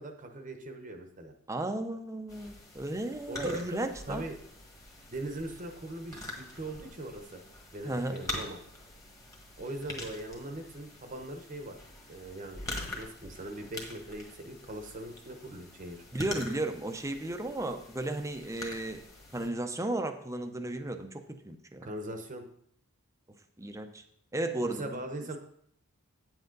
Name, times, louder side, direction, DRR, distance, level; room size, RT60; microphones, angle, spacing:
voice 1, 0.0-1.3 3.3-3.8 4.1-4.4 5.1-7.4 7.7-8.6 9.6-11.7 12.1-12.7 12.9-16.0 21.8-22.4 24.6-25.4, right 1 dB, 35° right, 5 dB, 0.9 m, -40 dB
voice 2, 1.5-4.2 7.8-8.2 16.1-19.0 19.3-21.9 23.6-24.0 24.3-25.0, right 1 dB, 15° right, 7 dB, 0.6 m, -34 dB
sound 1, 2.3-19.5, left 1 dB, 15° left, 1.5 m, -45 dB
8.9 x 7.6 x 3.8 m, 0.66 s
head